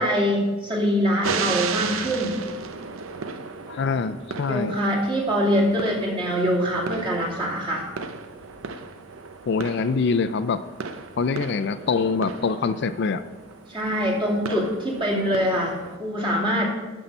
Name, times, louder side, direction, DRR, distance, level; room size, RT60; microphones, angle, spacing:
voice 1, 0.0-2.4 4.5-7.9 13.7-16.7, equal, 25° right, -3 dB, 2.3 m, -24 dB
sound 1, 1.2-16.0, right 5 dB, 85° right, 0.6 m, -35 dB
voice 2, 3.7-4.8 9.5-10.6 11.2-13.2, left 4 dB, 55° left, 12 dB, 0.4 m, -24 dB
11.5 x 5.5 x 5.3 m, 1.2 s
head